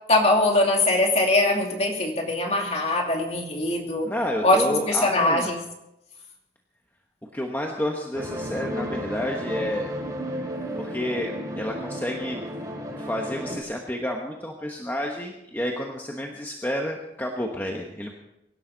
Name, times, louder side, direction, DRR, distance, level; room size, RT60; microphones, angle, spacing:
voice 1, 0.1-4.1 4.4-5.6, left 2 dB, 35° left, 1 dB, 2.7 m, -22 dB
voice 2, 4.0-5.5 7.3-9.9 10.8-12.5 13.0-18.1, left 1 dB, 10° left, 0 dB, 1.2 m, -30 dB
sound 1, 8.1-13.6, equal, 20° right, 3.5 m, -33 dB
23.0 x 12.0 x 4.0 m, 0.88 s
head